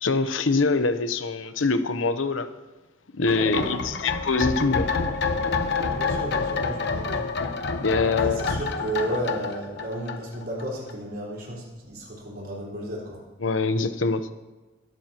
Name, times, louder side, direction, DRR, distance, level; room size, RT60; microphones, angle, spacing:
voice 1, 0.0-2.5 3.2-4.9 7.8-8.4 13.4-14.3, left 3 dB, 85° left, 0.9 m, -24 dB
sound 1, 3.3-10.6 10.9-11.0, left 4 dB, 60° left, 1.0 m, -28 dB
voice 2, 3.3-4.0 5.9-7.3 8.0-13.2, right 1 dB, 55° right, 4.4 m, -33 dB
22.0 x 12.5 x 3.0 m
head